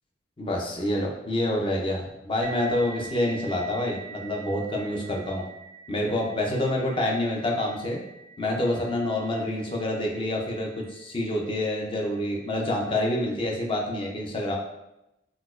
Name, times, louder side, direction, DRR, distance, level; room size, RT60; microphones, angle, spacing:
voice 1, 0.4-5.4 5.9-8.0 8.4-14.6, left 1 dB, 30° left, -1 dB, 0.5 m, -27 dB
sound 1, 2.4-11.7, right 5 dB, 40° right, 0.3 m, -46 dB
4.0 x 2.1 x 2.4 m, 0.90 s
head